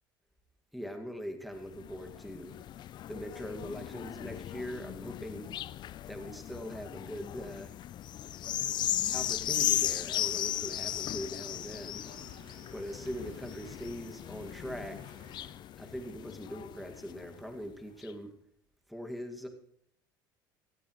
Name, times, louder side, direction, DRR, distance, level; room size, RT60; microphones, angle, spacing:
voice 1, 0.7-2.6 3.1-5.5 6.1-7.7 9.1-12.1 12.7-15.0 15.8-18.3 18.9-19.5, equal, ahead, 4 dB, 2.2 m, -41 dB
sound 1, 1.6-17.4 18.0-18.1, left 12 dB, 40° left, 0.5 m, -37 dB
sound 2, 10.2-15.5, right 4 dB, 55° right, 3.9 m, -56 dB
17.0 x 14.5 x 3.2 m, 0.70 s
hypercardioid pair, 65°, 11 cm